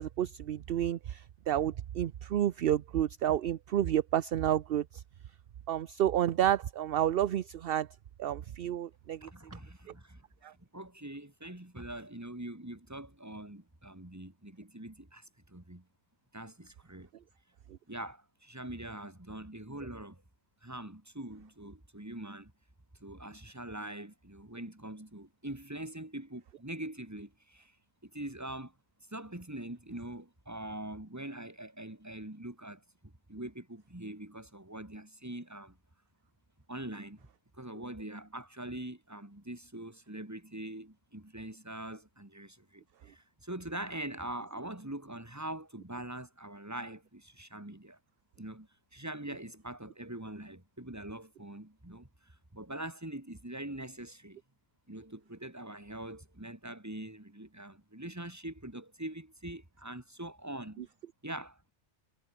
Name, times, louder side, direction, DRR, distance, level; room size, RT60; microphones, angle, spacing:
voice 1, 0.0-5.0 5.7-7.9 8.2-9.3 10.4-10.5, right 11 dB, 55° right, 0.7 m, -30 dB
voice 2, 9.2-15.8 16.3-17.1 17.9-20.2 20.6-22.5 23.0-27.7 28.0-28.7 29.1-35.8 36.7-37.3 37.6-48.0 48.4-54.4 54.9-60.9 61.2-61.6, right 1 dB, 15° right, 2.5 m, -43 dB
omnidirectional pair, 1.3 m